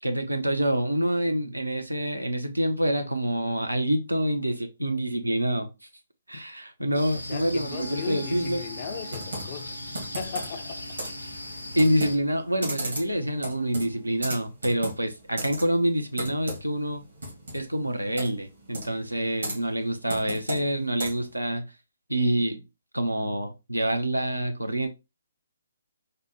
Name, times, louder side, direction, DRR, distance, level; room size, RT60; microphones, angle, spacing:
voice 1, 0.0-5.7 6.3-8.6 11.7-17.0 17.5-21.7 22.1-22.6 22.9-24.9, right 1 dB, 90° right, 0.6 m, -27 dB
sound 1, 6.9-12.2, left 1 dB, 90° left, 0.7 m, -39 dB
voice 2, 7.2-9.8 10.1-10.9, left 7 dB, 35° left, 0.4 m, -37 dB
Wind instrument woodwind instrument, 7.5-14.2, right 4 dB, 20° right, 0.6 m, -47 dB
Computer keyboard, 9.1-21.4, right 1 dB, 70° right, 1.8 m, -37 dB
4.2 x 2.1 x 3.0 m
figure-of-eight pair, 135°, 0 cm